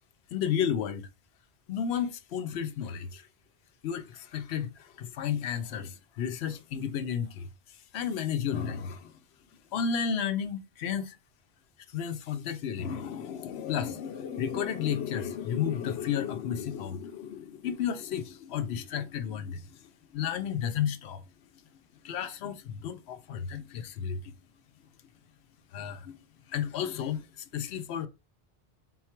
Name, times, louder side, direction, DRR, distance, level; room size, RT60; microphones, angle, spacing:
voice 1, 0.3-1.1 1.7-3.3 3.8-7.5 7.9-9.2 9.7-11.2 11.9-21.2 22.0-24.3 25.7-26.2 26.5-28.1, left 8 dB, 90° left, 0.8 m, -32 dB
3.9 x 2.3 x 4.3 m
omnidirectional pair, 1.0 m